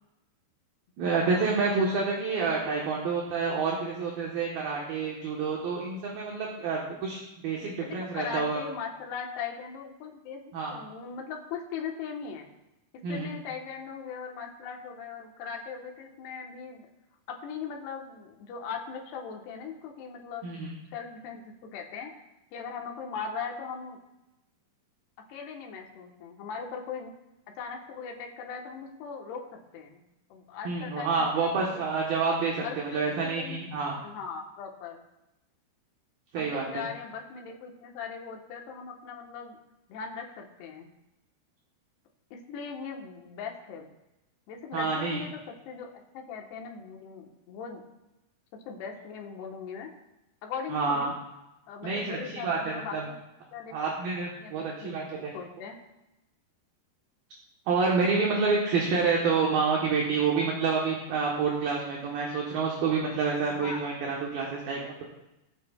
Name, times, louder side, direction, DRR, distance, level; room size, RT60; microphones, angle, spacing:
voice 1, 1.0-8.6 10.5-10.7 13.0-13.4 20.4-20.8 30.6-34.0 36.3-36.8 44.7-45.2 50.7-51.1 51.8-53.1 53.7-55.3 57.7-65.0, right 4 dB, 65° right, -2 dB, 2.8 m, -28 dB
voice 2, 7.8-10.4 10.7-12.5 12.9-16.9 17.3-22.1 22.5-24.0 25.3-27.1 27.6-30.0 30.3-31.9 32.6-33.6 34.0-35.0 36.4-39.6 39.9-40.9 42.3-43.9 44.5-45.9 46.1-47.8 48.5-49.9 50.4-51.1 51.7-53.2 53.5-53.9 54.4-55.8 63.5-63.8, left 6 dB, 75° left, 1 dB, 3.3 m, -39 dB
21.5 x 8.6 x 2.4 m, 0.94 s
omnidirectional pair, 4.9 m